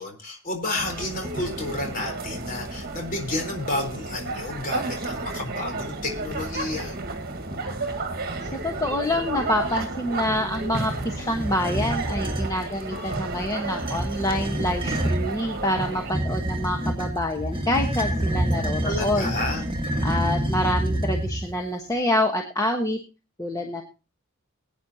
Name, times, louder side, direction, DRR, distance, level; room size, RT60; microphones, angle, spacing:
voice 1, 0.0-7.0 18.8-19.6, left 2 dB, 40° left, 3 dB, 4.0 m, -31 dB
sound 1, 0.8-16.1, right 2 dB, 45° right, 1.6 m, -32 dB
voice 2, 8.4-19.3 20.0-23.0 23.4-23.8, left 1 dB, 15° left, 2 dB, 1.2 m, -27 dB
sound 2, 11.2-12.5 13.7-15.3 16.1-21.6, right 1 dB, 25° right, 1.8 m, -27 dB
21.0 x 9.5 x 2.8 m, 0.31 s
head